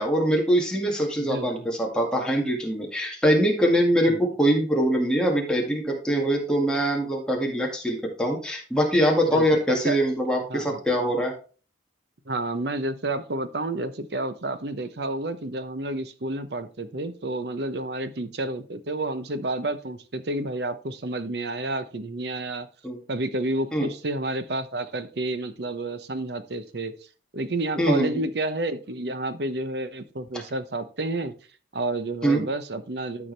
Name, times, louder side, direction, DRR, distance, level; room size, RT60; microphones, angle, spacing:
voice 1, 0.0-11.3 22.8-23.0 23.7-23.9 27.8-28.1 32.2-32.4, equal, 5° left, -1 dB, 2.0 m, -23 dB
voice 2, 1.2-1.7 4.1-4.2 9.2-10.0 10.5-10.8 12.3-22.7 23.1-26.9 27.3-31.3 31.7-33.3, right 2 dB, 60° right, 11 dB, 0.9 m, -30 dB
13.0 x 4.8 x 3.3 m, 0.37 s
head